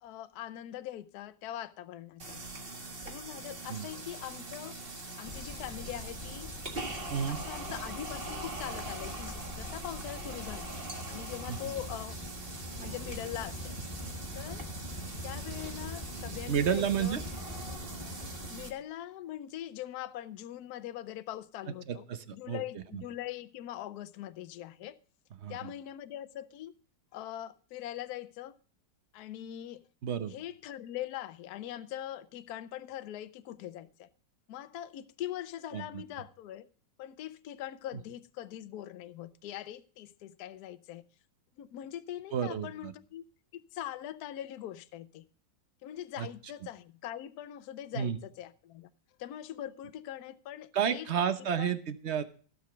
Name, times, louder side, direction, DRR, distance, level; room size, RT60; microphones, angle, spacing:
voice 1, 0.0-2.4 3.0-4.8 5.2-6.5 7.3-10.7 11.1-12.2 12.8-13.8 14.3-14.6 15.2-17.2 18.2-22.0 22.3-25.0 25.5-26.7 27.1-28.5 29.1-29.8 30.3-34.1 34.5-36.7 37.0-41.0 41.6-43.3 43.5-45.2 45.8-48.9 49.2-51.2 51.6-51.8, left 12 dB, 65° left, 1.1 m, -42 dB
sound 1, 2.2-18.7, right 2 dB, 35° right, 1.7 m, -42 dB
sound 2, 5.2-18.5, left 1 dB, 25° left, 1.3 m, -43 dB
voice 2, 16.5-17.2 21.9-22.6 22.9-23.0 25.4-25.7 30.0-30.3 35.7-36.0 42.3-42.9 46.2-46.3 47.9-48.2 50.7-52.2, right 8 dB, 50° right, 0.8 m, -31 dB
15.5 x 6.8 x 5.0 m
omnidirectional pair, 2.0 m